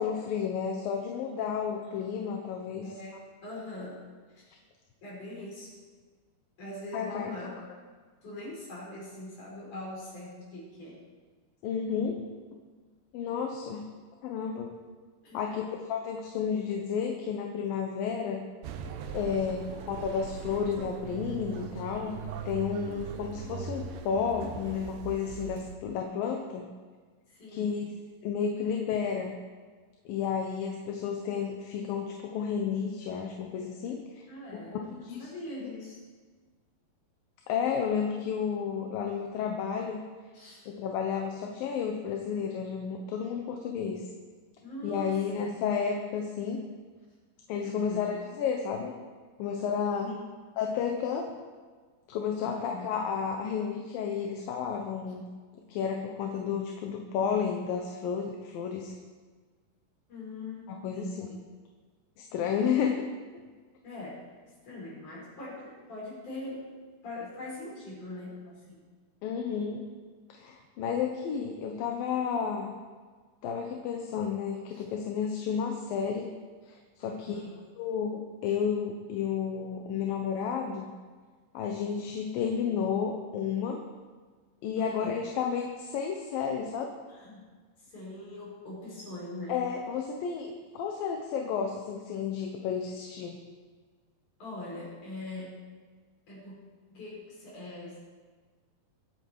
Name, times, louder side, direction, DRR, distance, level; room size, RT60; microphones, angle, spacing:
voice 1, 0.0-2.9 6.9-7.3 11.6-12.2 13.1-13.8 14.2-14.8 15.3-15.6 15.9-18.4 19.1-22.2 22.5-26.7 27.5-27.9 28.2-29.3 30.1-34.2 34.5-35.3 35.6-35.7 37.5-40.0 40.7-44.0 44.8-46.6 47.5-48.9 49.4-50.1 50.6-51.3 52.1-55.2 55.7-59.0 60.7-61.3 62.3-63.1 69.2-69.9 70.3-72.7 73.4-76.3 76.7-77.4 77.8-80.9 81.5-83.8 84.6-86.9 89.5-93.4, left 7 dB, 75° left, 2 dB, 2.7 m, -32 dB
voice 2, 1.8-2.2 2.8-4.0 4.3-4.5 5.0-5.7 6.6-7.6 8.2-11.1 15.2-15.5 19.3-19.7 22.8-23.0 25.3-25.4 27.3-27.8 34.3-34.9 35.2-36.0 40.3-40.7 44.6-45.6 47.6-48.2 50.0-50.3 52.4-53.0 60.1-61.4 63.8-64.4 64.6-66.8 67.0-68.9 74.7-74.9 77.0-77.6 84.8-85.2 87.1-87.5 87.8-89.7 94.4-95.6 96.3-96.6 96.9-98.0, left 2 dB, 50° left, -5 dB, 7.0 m, -42 dB
sound 1, 18.6-25.8, right 7 dB, 75° right, 2.4 m, -40 dB
24.5 x 8.5 x 4.8 m, 1.5 s
omnidirectional pair, 4.4 m